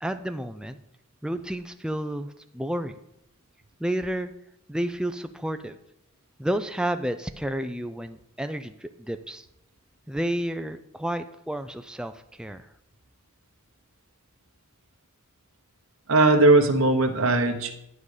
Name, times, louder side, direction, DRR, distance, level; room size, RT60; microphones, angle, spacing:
voice 1, 0.0-0.8 1.2-3.0 3.8-4.3 4.7-5.7 6.4-9.5 10.1-12.7, right 1 dB, 5° right, 8 dB, 0.4 m, -31 dB
voice 2, 16.1-17.7, right 2 dB, 65° right, 5 dB, 1.1 m, -19 dB
11.0 x 5.4 x 4.9 m, 0.82 s
head